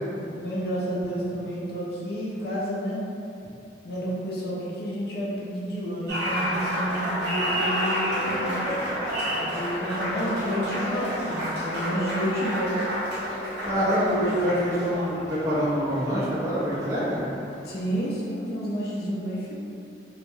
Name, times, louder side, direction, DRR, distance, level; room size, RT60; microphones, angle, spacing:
voice 1, 0.2-3.0 3.8-8.6 9.4-12.8 17.6-19.6, equal, 55° left, -6 dB, 0.4 m, -30 dB
Applause, 6.1-17.8, equal, 70° right, 0.8 m, -30 dB
voice 2, 13.6-17.2, equal, 15° right, -10 dB, 0.5 m, -25 dB
2.2 x 2.0 x 3.0 m, 2.5 s
head